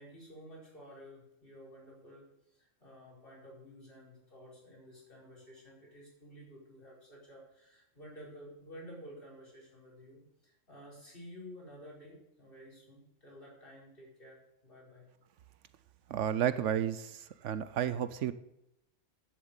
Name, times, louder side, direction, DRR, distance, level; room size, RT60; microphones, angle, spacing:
voice 1, 0.0-15.1, equal, 45° left, -5 dB, 5.2 m, -52 dB
voice 2, 16.1-18.3, right 10 dB, 75° right, 13 dB, 0.9 m, -32 dB
11.0 x 7.5 x 8.1 m, 0.85 s
omnidirectional pair, 1.3 m